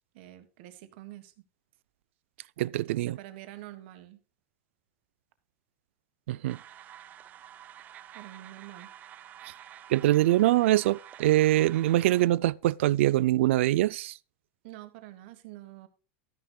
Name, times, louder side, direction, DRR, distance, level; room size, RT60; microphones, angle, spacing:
voice 1, 0.1-1.3 2.8-4.2 8.1-8.9 14.6-15.9, right 15 dB, 60° right, 1.6 m, -46 dB
voice 2, 2.6-3.2 6.3-6.6 9.5-9.6 9.9-14.2, right 15 dB, 85° right, 0.4 m, -24 dB
sound 1, 6.5-12.3, right 10 dB, 25° right, 0.4 m, -49 dB
13.0 x 10.0 x 2.3 m
supercardioid pair, 160°, 7 cm